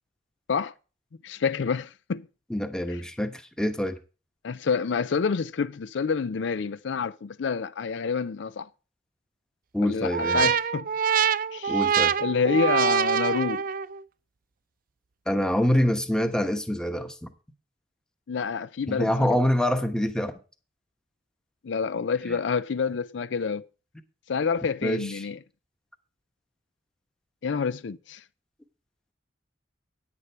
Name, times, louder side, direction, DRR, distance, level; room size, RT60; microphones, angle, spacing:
voice 1, 1.2-2.3 4.4-8.7 9.8-10.9 11.5-11.9 12.2-13.6 18.3-19.3 21.6-23.7 24.3-25.4 27.4-28.2, left 5 dB, 70° left, 0.5 m, -28 dB
voice 2, 2.5-3.9 9.7-10.5 11.7-12.1 15.3-17.3 18.9-20.3 22.3-22.4 24.8-25.3, equal, 5° left, 1.0 m, -26 dB
sound 1, 10.1-14.0, right 7 dB, 50° right, 0.4 m, -24 dB
9.8 x 9.7 x 4.6 m
head